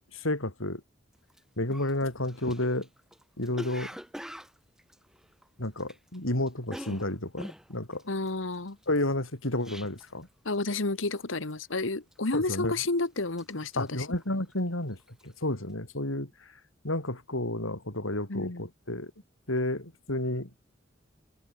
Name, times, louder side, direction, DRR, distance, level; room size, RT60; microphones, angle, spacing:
voice 1, 0.1-0.8 1.6-2.9 3.4-4.0 5.6-8.0 8.9-10.3 12.3-12.7 13.8-15.0 15.2-16.3 16.8-19.1 19.5-20.5, left 1 dB, 85° left, 5.6 m, -31 dB
Cough, 1.3-1.4 1.7-6.2 6.4-10.2 10.5-10.9 11.2-11.6 12.1-12.7 13.0-14.7 15.0-15.3, equal, 5° right, 5.2 m, -44 dB
voice 2, 8.1-8.8 10.5-14.1 18.3-18.7, left 3 dB, 70° left, 1.6 m, -31 dB
head